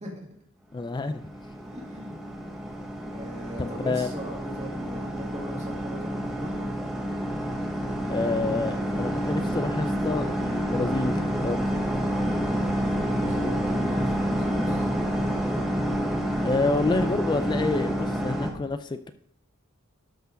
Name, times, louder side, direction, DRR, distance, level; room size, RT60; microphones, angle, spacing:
voice 1, 0.7-1.2 3.6-4.1 8.1-11.6 16.4-19.1, left 3 dB, 20° left, 10 dB, 0.3 m, -28 dB
sound 1, 1.0-18.5, equal, ahead, 1.2 m, -28 dB
voice 2, 1.6-2.2 3.1-6.7 12.8-14.9, equal, 30° right, -3 dB, 2.2 m, -39 dB
12.5 x 4.6 x 5.2 m, 0.74 s
head